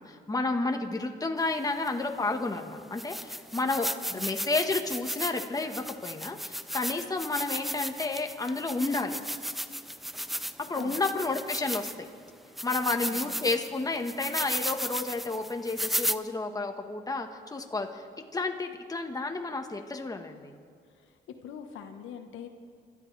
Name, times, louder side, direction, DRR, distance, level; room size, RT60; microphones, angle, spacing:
voice 1, 0.0-9.2 10.7-11.9 12.6-18.1 18.3-20.5, left 3 dB, 20° left, 4 dB, 1.4 m, -31 dB
sound 1, 1.9-2.0 2.5-2.6 3.0-12.1 12.6-16.2, equal, ahead, 0.5 m, -35 dB
voice 2, 12.8-13.5 20.9-22.5, left 8 dB, 80° left, 6 dB, 1.2 m, -44 dB
28.5 x 13.0 x 3.4 m, 2.2 s
cardioid pair, 90°, 20 cm